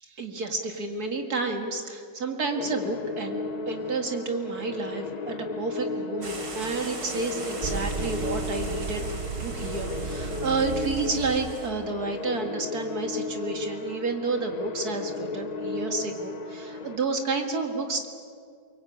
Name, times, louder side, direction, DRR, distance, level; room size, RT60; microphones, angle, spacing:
voice 1, 0.0-3.4 3.7-9.0 9.4-18.1, right 3 dB, 60° right, 4 dB, 2.4 m, -30 dB
sound 1, 2.6-17.0, left 3 dB, 60° left, 0.4 m, -35 dB
sound 2, 6.2-11.7, right 2 dB, 80° right, 3.8 m, -40 dB
sound 3, 7.6-11.6, right 6 dB, 40° right, 0.9 m, -35 dB
24.0 x 23.5 x 8.7 m, 2.4 s
omnidirectional pair, 1.8 m